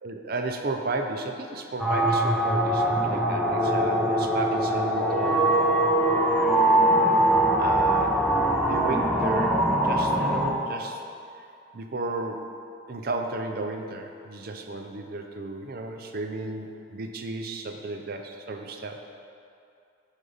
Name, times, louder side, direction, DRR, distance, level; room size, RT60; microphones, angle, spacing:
voice 1, 0.0-5.5 7.6-8.2 8.6-11.0 11.7-12.5 12.9-19.0, right 2 dB, 50° right, 4 dB, 0.6 m, -33 dB
sound 1, 1.8-10.5, right 1 dB, 5° right, 0.6 m, -22 dB
8.1 x 5.5 x 3.9 m, 2.5 s
head